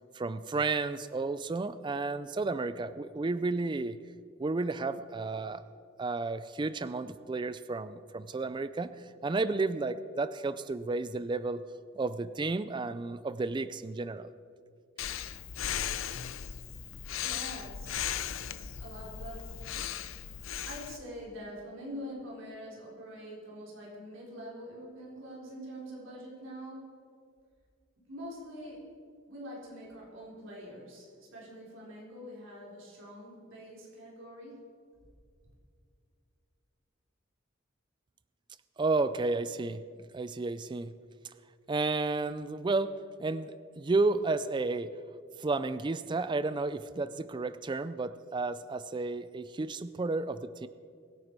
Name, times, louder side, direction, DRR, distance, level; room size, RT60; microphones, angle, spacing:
voice 1, 0.1-4.0 4.4-5.6 6.0-11.6 12.0-14.3 38.8-39.8 40.1-40.9 41.7-42.9 43.2-44.9 45.4-50.7, right 3 dB, 25° right, 14 dB, 0.3 m, -32 dB
Breathing, 15.0-21.0, left 9 dB, 85° left, 0.6 m, -37 dB
voice 2, 16.9-18.1 18.8-19.6 20.3-27.0 28.1-28.9 29.3-34.7, equal, 75° right, -4 dB, 3.9 m, -45 dB
22.0 x 9.7 x 4.6 m, 2.2 s
head